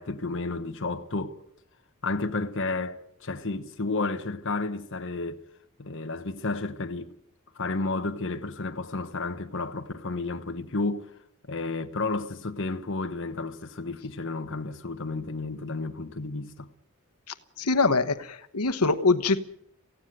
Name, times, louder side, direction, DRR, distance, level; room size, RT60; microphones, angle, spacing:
voice 1, 0.0-1.4 2.0-5.4 5.8-7.1 7.5-11.1 11.5-16.7, left 3 dB, 55° left, 1.2 m, -32 dB
voice 2, 17.6-19.4, left 3 dB, 90° left, 1.2 m, -23 dB
18.0 x 16.0 x 9.3 m
head